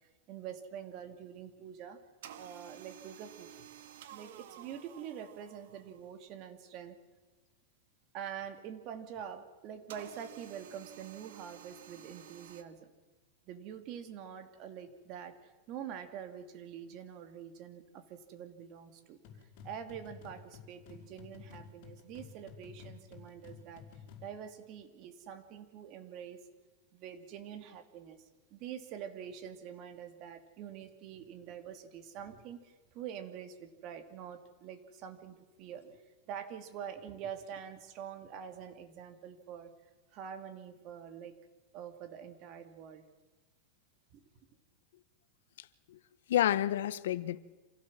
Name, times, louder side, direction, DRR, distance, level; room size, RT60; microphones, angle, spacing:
voice 1, 0.3-2.0 2.4-3.6 4.1-7.0 8.1-12.9 13.5-19.2 19.6-26.4 26.9-39.7 40.1-41.4 41.7-43.0 44.1-44.5, right 8 dB, 40° right, 7 dB, 2.6 m, -46 dB
sound 1, 2.2-6.2 9.9-12.6, right 10 dB, 70° right, 2.1 m, -52 dB
sound 2, 19.2-24.4, left 6 dB, 50° left, 5.5 m, -52 dB
voice 2, 45.6-46.0 46.3-47.4, left 12 dB, 80° left, 15 dB, 1.1 m, -30 dB
27.0 x 16.5 x 7.6 m, 1.2 s
supercardioid pair, 155°, 0 cm